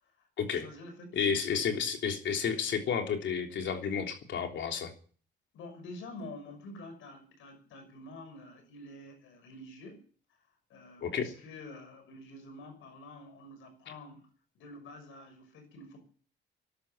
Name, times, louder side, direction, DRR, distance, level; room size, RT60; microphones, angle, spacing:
voice 1, 0.0-2.0 5.5-10.0 10.7-14.3 14.5-16.0, left 2 dB, 85° left, 7 dB, 6.1 m, -48 dB
voice 2, 1.1-4.9 11.0-11.3, left 7 dB, 70° left, 4 dB, 3.5 m, -31 dB
13.0 x 12.0 x 8.8 m, 0.43 s
cardioid pair, 90°, 20 cm